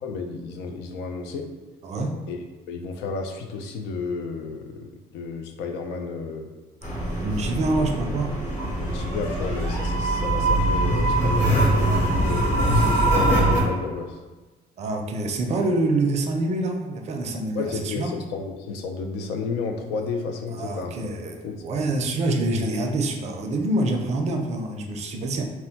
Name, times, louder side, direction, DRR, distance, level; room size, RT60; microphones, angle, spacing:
voice 1, 0.0-1.5 2.3-2.4 2.7-6.5 7.8-7.9 8.8-14.2 17.5-21.0 21.4-21.9, left 4 dB, 90° left, 5 dB, 0.4 m, -32 dB
voice 2, 1.8-2.2 7.2-8.4 14.8-18.1 20.5-25.4, right 2 dB, 40° right, 3 dB, 0.4 m, -26 dB
sound 1, 6.8-13.6, right 1 dB, 45° left, 1.0 m, -22 dB
2.2 x 2.1 x 3.8 m, 1.2 s
cardioid pair, 110°, 17 cm